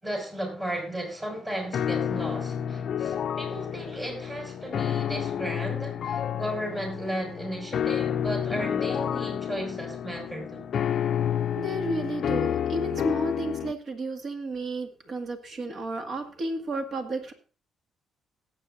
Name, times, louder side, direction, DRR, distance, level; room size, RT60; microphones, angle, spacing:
voice 1, 0.0-10.6, right 1 dB, 20° right, 5.4 m, -35 dB
sound 1, 1.7-13.7, left 9 dB, 60° left, 0.4 m, -30 dB
voice 2, 11.6-17.3, right 2 dB, 55° right, 1.9 m, -32 dB
18.0 x 8.5 x 2.6 m
cardioid pair, 90°, 0 cm